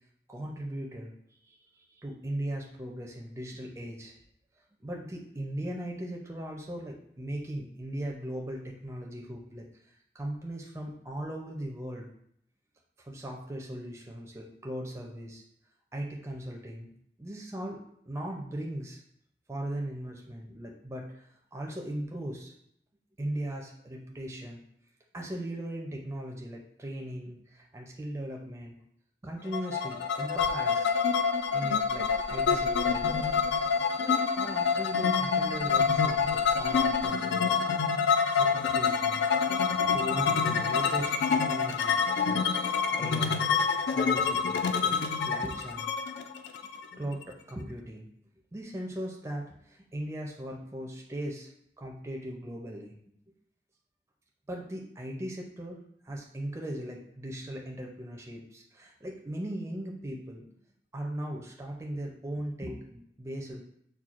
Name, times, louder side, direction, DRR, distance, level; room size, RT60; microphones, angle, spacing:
voice 1, 0.3-1.1 1.4-4.1 4.8-9.7 10.1-12.1 13.0-15.4 15.9-16.9 17.2-19.0 19.5-22.5 23.2-24.6 25.1-28.7 29.2-30.9 31.5-33.1 34.0-37.7 38.3-39.4 39.9-43.6 43.9-44.9 45.2-45.9 46.9-48.1 48.5-51.5 51.8-52.9 54.5-55.8 56.0-60.4 60.9-63.6, right 1 dB, 15° right, 0 dB, 0.4 m, -38 dB
sound 1, 29.5-47.2, left 6 dB, 85° left, 0.3 m, -27 dB
sound 2, 30.3-37.1, left 1 dB, 35° left, 0.6 m, -46 dB
5.7 x 2.2 x 2.4 m, 0.71 s
head